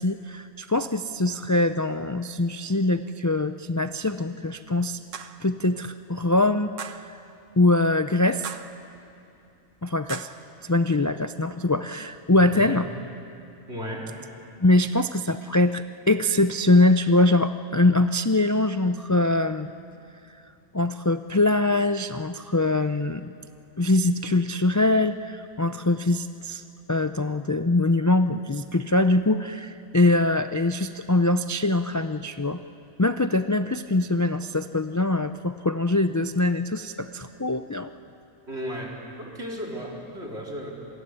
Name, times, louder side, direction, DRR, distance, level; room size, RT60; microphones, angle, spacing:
voice 1, 0.0-5.0 5.4-7.2 7.6-8.5 9.8-10.3 10.6-12.9 14.6-19.7 20.7-23.3 23.8-26.6 26.9-32.6 33.0-37.9, left 2 dB, 30° left, 9 dB, 0.3 m, -23 dB
sound 1, 5.1-5.5 6.8-7.1 8.4-8.8 10.1-10.4, right 7 dB, 80° right, 1.4 m, -37 dB
voice 2, 13.7-14.1 38.5-40.7, equal, 55° right, -2 dB, 4.5 m, -34 dB
27.0 x 21.5 x 9.8 m, 2.7 s
omnidirectional pair, 1.3 m